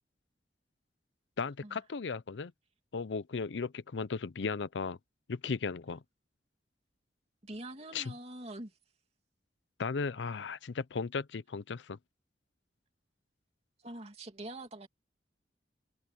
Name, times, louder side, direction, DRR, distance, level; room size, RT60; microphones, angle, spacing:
voice 1, 1.4-2.5 2.9-5.0 5.3-6.0 7.9-8.1 9.8-12.0, left 4 dB, 85° left, 0.6 m, -36 dB
voice 2, 7.4-8.7 13.8-14.9, right 1 dB, 35° right, 2.6 m, -44 dB
head